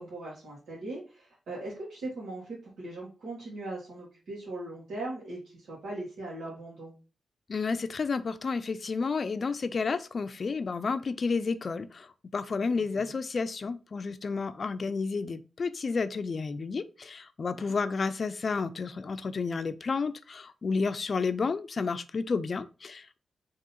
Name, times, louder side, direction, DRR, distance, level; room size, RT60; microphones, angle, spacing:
voice 1, 0.0-6.9 12.9-13.2 17.5-17.7, right 2 dB, 85° right, 1.6 m, -39 dB
voice 2, 7.5-23.2, left 4 dB, 50° left, 0.4 m, -31 dB
3.7 x 2.9 x 4.2 m
wide cardioid pair, 100°, 0 cm